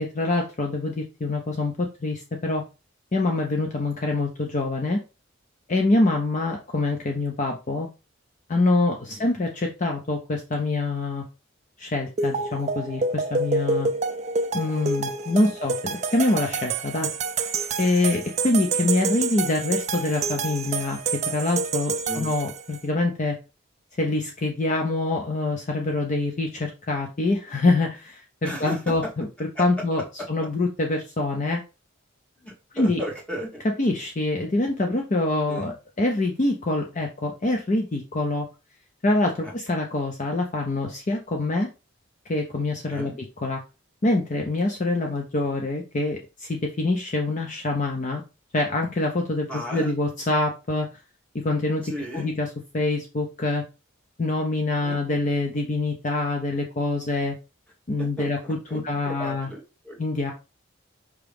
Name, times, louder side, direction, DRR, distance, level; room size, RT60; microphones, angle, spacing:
voice 1, 0.0-2.6 3.1-5.0 5.7-7.9 8.5-11.2 11.8-13.9 14.5-17.1 17.8-23.4 24.0-30.0 30.3-31.6 32.7-33.0 33.8-38.5 39.0-41.7 42.3-43.1 43.4-43.6 44.0-48.2 48.5-50.9 51.3-51.9 52.1-52.5 52.7-53.7 54.2-57.4 57.9-59.5 60.0-60.3, left 2 dB, 35° left, 2 dB, 0.5 m, -25 dB
sound 1, 12.2-22.8, right 4 dB, 35° right, 0.3 m, -28 dB
voice 2, 28.4-29.1 29.6-29.7 32.4-33.6 35.5-35.7 39.4-39.5 42.9-43.2 45.0-45.1 49.5-49.9 51.8-52.3 54.8-55.0 58.0-60.0, equal, 5° left, -2 dB, 1.2 m, -35 dB
4.8 x 2.9 x 3.4 m, 0.29 s
head